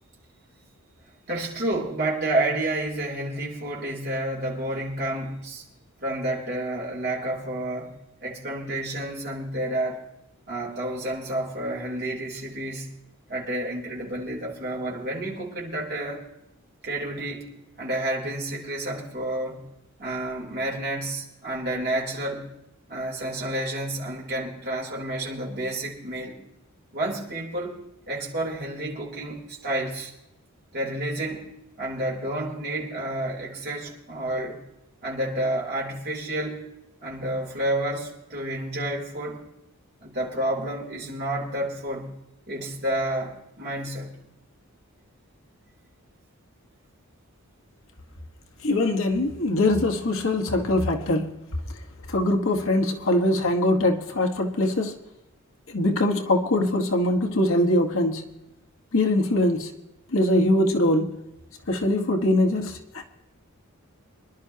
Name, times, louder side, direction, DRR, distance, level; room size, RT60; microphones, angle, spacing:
voice 1, 1.3-5.6 6.0-10.0 10.5-12.9 13.3-16.2 16.8-19.6 20.0-22.5 22.9-26.4 26.9-27.8 28.1-30.1 30.7-31.5 31.8-34.6 35.0-36.6 37.0-39.4 40.0-42.1 42.5-44.2, right 1 dB, 45° right, 3.4 m, -30 dB
voice 2, 48.6-51.3 52.1-55.0 55.7-58.3 58.9-59.7 60.1-61.1 61.7-63.0, left 1 dB, 60° left, 1.4 m, -22 dB
25.0 x 11.5 x 2.8 m
head